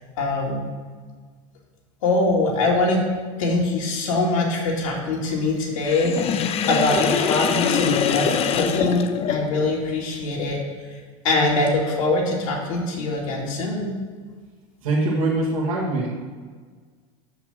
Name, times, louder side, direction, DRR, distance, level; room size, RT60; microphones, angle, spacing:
voice 1, 0.2-0.7 2.0-3.0 3.4-10.6 11.2-13.9, left 2 dB, 85° left, -2 dB, 2.6 m, -23 dB
Sink (filling or washing), 5.8-9.8, left 8 dB, 35° left, 0.6 m, -24 dB
voice 2, 14.8-16.1, right 2 dB, 90° right, -4 dB, 1.8 m, -23 dB
6.4 x 5.8 x 6.2 m, 1.5 s
supercardioid pair, 120°, 17 cm